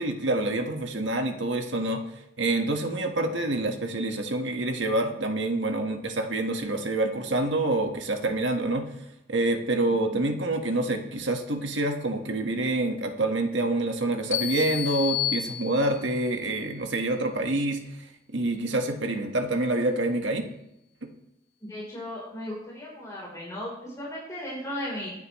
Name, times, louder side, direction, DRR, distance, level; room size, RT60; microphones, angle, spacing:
voice 1, 0.0-2.0 2.4-8.8 9.3-17.8 18.3-20.5, right 2 dB, 70° right, 4 dB, 1.6 m, -27 dB
sound 1, 14.3-16.2, left 12 dB, 85° left, 2.0 m, -30 dB
voice 2, 21.6-25.1, left 1 dB, 20° left, -5 dB, 4.1 m, -36 dB
25.0 x 9.5 x 3.2 m, 0.83 s
head